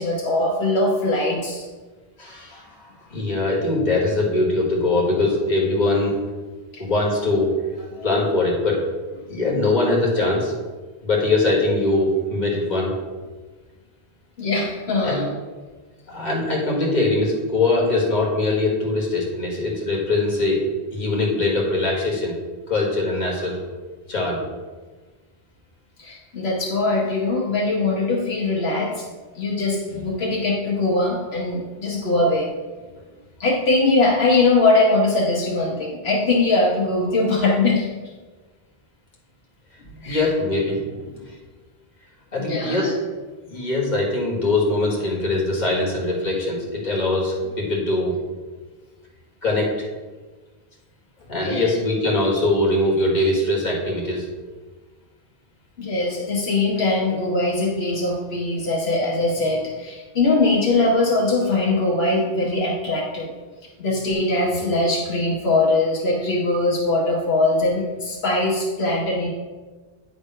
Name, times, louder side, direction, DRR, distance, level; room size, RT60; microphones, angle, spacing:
voice 1, 0.0-1.6 7.9-8.1 14.4-15.2 26.0-29.0 29.3-32.5 33.4-37.9 40.0-40.2 42.4-42.9 51.3-51.8 55.8-63.3 63.8-69.3, left 2 dB, 75° left, -3 dB, 1.3 m, -21 dB
voice 2, 2.2-6.2 6.8-7.6 8.0-8.8 9.3-10.5 11.0-12.9 15.0-15.2 16.1-20.6 20.9-22.4 22.7-23.6 24.1-24.4 33.0-33.1 40.0-41.4 42.3-42.9 43.5-48.2 49.4-49.7 51.3-54.3, left 2 dB, 45° left, -3 dB, 1.7 m, -22 dB
9.1 x 3.4 x 5.4 m, 1.3 s
omnidirectional pair, 1.1 m